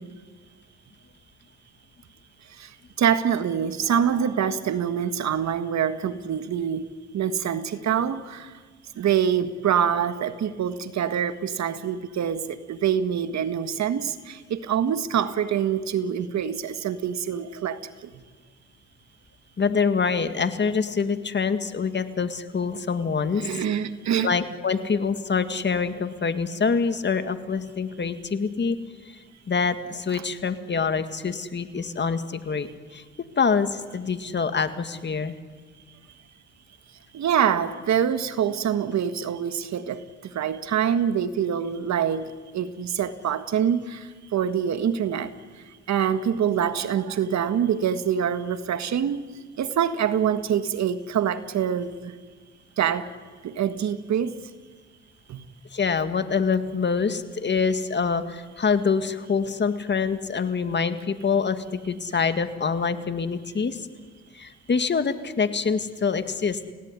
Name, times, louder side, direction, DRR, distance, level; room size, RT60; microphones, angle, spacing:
voice 1, 3.0-8.5 9.0-17.8 23.3-24.4 37.1-40.0 40.3-45.3 45.9-49.2 49.6-52.1 52.8-53.1 53.4-54.4 55.3-55.4, right 8 dB, 65° right, 11 dB, 1.7 m, -25 dB
voice 2, 19.6-23.6 24.2-28.8 29.5-32.7 32.9-33.0 33.4-35.3 55.7-63.9 64.3-66.7, left 5 dB, 35° left, 10 dB, 2.0 m, -25 dB
29.5 x 17.5 x 9.8 m, 1.5 s
cardioid pair, 90°, 30 cm